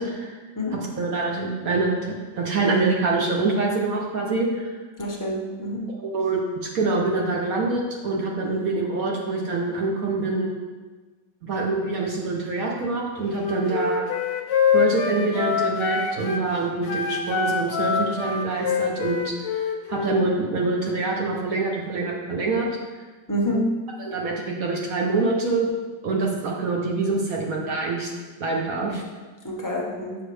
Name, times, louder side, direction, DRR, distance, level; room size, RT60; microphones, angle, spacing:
voice 1, 0.0-0.4 0.7-4.7 6.0-10.6 11.4-14.1 14.7-19.6 19.9-22.7 24.0-25.7 26.0-28.1 28.4-29.0, right 3 dB, 55° right, -1 dB, 1.2 m, -25 dB
voice 2, 5.0-5.8 23.3-23.6 29.4-30.2, equal, 20° left, -3 dB, 0.5 m, -27 dB
Wind instrument woodwind instrument, 13.4-16.5 16.8-20.2, left 6 dB, 65° left, 0.8 m, -25 dB
7.0 x 6.0 x 3.3 m, 1.3 s
omnidirectional pair, 2.0 m